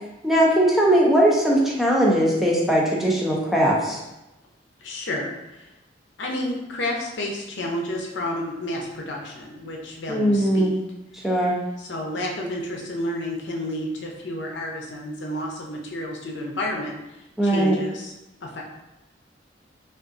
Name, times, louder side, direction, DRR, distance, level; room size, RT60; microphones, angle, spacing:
voice 1, 0.2-4.0 10.1-10.7 11.1-11.5 17.4-17.8, right 1 dB, ahead, -4 dB, 0.4 m, -19 dB
voice 2, 4.8-5.7 6.2-10.8 11.8-17.0 17.4-18.1 18.4-18.6, left 1 dB, 75° left, -1 dB, 0.6 m, -30 dB
3.6 x 2.5 x 2.5 m, 0.95 s
head